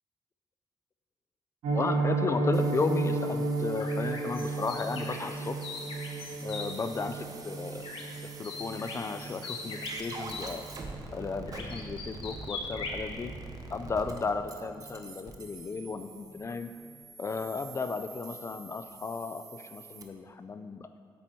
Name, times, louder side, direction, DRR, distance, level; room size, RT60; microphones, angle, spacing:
Piano, 1.6-12.5 12.8-13.0 13.3-13.5 13.8-14.1 14.4-14.5, right 3 dB, 85° right, 1.8 m, -34 dB
voice 1, 1.7-5.6 6.4-7.8 8.2-10.7 11.1-13.3 13.7-16.7 17.2-20.9, left 4 dB, 30° left, 9 dB, 0.4 m, -34 dB
sound 1, 2.5-20.0, right 3 dB, 40° right, 0.9 m, -46 dB
sound 2, 3.8-6.7 7.8-8.2 8.4-10.5 11.5-13.0, left 4 dB, 70° left, 1.4 m, -40 dB
8.8 x 8.4 x 4.6 m, 2.1 s
cardioid pair, 135°, 9 cm